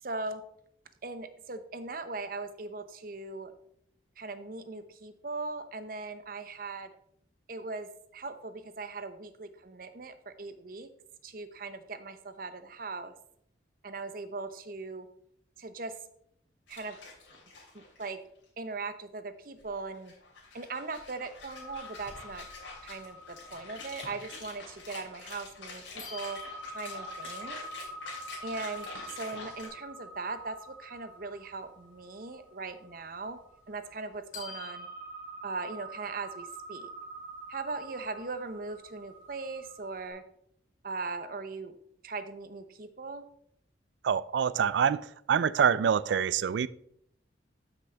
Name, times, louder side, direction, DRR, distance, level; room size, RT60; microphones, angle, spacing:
voice 1, 0.0-0.4 1.0-3.5 4.2-6.9 7.5-10.9 11.2-13.1 13.8-15.1 15.6-15.9 16.7-17.0 17.7-18.2 18.6-20.1 20.5-22.4 22.8-26.4 26.7-27.6 28.4-28.9 29.1-33.4 33.7-34.9 35.4-36.9 37.5-40.2 40.8-41.7 42.0-43.3, right 3 dB, 50° right, 10 dB, 0.8 m, -39 dB
sound 1, 16.7-18.1 18.4-18.5 19.6-29.7, left 3 dB, 85° left, 2.9 m, -46 dB
sound 2, 21.5-25.6 26.0-34.1 34.3-40.1, equal, 45° left, 2.8 m, -46 dB
voice 2, 44.0-46.7, right 7 dB, 70° right, 19 dB, 0.3 m, -26 dB
13.0 x 6.1 x 3.4 m, 0.71 s
head